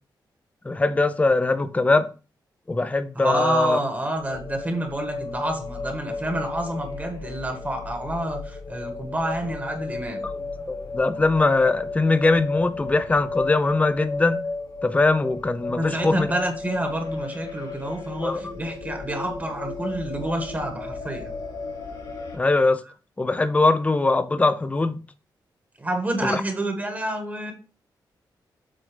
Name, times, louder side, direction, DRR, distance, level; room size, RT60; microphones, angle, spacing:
voice 1, 0.7-2.1 2.7-3.8 10.2-14.4 14.8-16.3 18.2-18.5 22.3-22.8 23.2-25.0 26.2-26.4, left 3 dB, 15° left, 0.5 m, -21 dB
voice 2, 3.1-10.2 15.8-21.3 25.8-27.5, right 1 dB, 20° right, 1.4 m, -28 dB
sound 1, 4.2-22.4, left 3 dB, 85° left, 2.5 m, -34 dB
7.5 x 2.6 x 5.0 m
wide cardioid pair, 120°, 8 cm